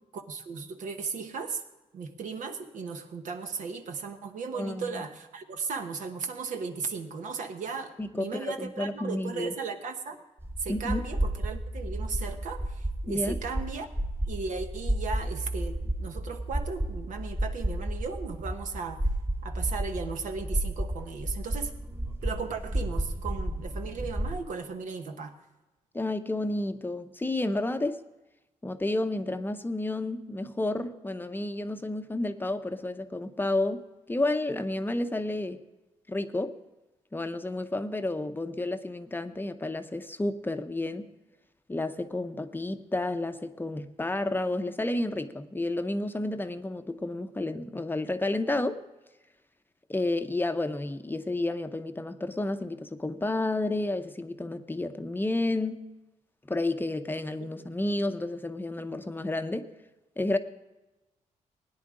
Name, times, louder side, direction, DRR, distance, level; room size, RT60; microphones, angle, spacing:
voice 1, 0.1-1.6 1.9-10.2 10.6-13.9 14.3-19.0 19.4-21.7 22.2-25.3, right 5 dB, 75° right, 1.2 m, -36 dB
voice 2, 4.5-5.0 8.0-9.6 10.7-11.0 13.1-13.4 25.9-28.0 28.6-35.6 36.1-36.6 37.1-41.1 41.7-48.8 49.9-55.9 56.5-59.7 60.2-60.4, left 2 dB, 15° left, 0.7 m, -31 dB
sound 1, 10.4-24.4, right 1 dB, 20° right, 1.2 m, -32 dB
17.5 x 9.8 x 3.8 m
cardioid pair, 85°, 13 cm